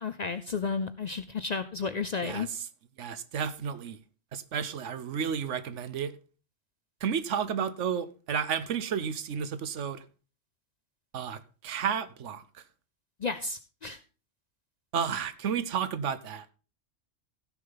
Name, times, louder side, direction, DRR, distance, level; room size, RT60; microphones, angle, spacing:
voice 1, 0.0-2.5 13.2-14.0, left 4 dB, 50° left, 0.5 m, -32 dB
voice 2, 3.0-4.0 4.3-6.1 7.0-10.0 11.1-12.4 14.9-16.5, right 7 dB, 75° right, 1.1 m, -32 dB
15.5 x 6.6 x 3.9 m
omnidirectional pair, 1.3 m